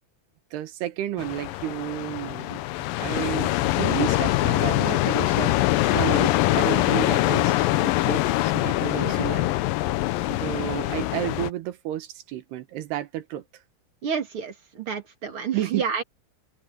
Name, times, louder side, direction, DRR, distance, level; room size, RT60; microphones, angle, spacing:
voice 1, 0.5-9.5 10.3-13.5 15.5-15.8, right 13 dB, 85° right, 3.4 m, -32 dB
sound 1, 1.2-11.5, left 17 dB, 80° left, 2.1 m, -23 dB
voice 2, 14.0-16.0, right 6 dB, 40° right, 2.3 m, -30 dB
open air
omnidirectional pair, 4.6 m